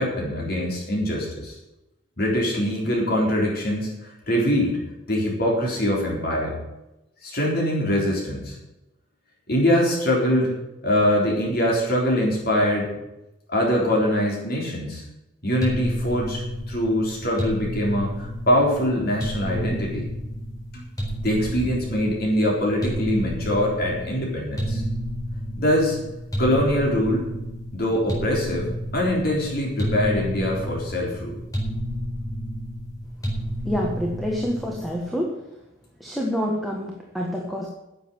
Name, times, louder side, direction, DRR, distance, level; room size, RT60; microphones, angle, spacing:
voice 1, 0.0-1.6 2.2-4.8 5.1-6.6 7.2-8.6 9.5-10.5 10.8-12.9 13.5-15.0 15.4-20.1 20.7-20.9 21.2-24.8 25.6-26.0 26.4-27.3 27.7-31.4, equal, 50° left, -2 dB, 3.8 m, -23 dB
sound 1, 15.6-34.9, equal, 20° left, 4.3 m, -31 dB
voice 2, 33.7-35.4 36.0-37.7, equal, ahead, -2 dB, 1.6 m, -27 dB
10.5 x 7.8 x 9.8 m, 0.96 s
head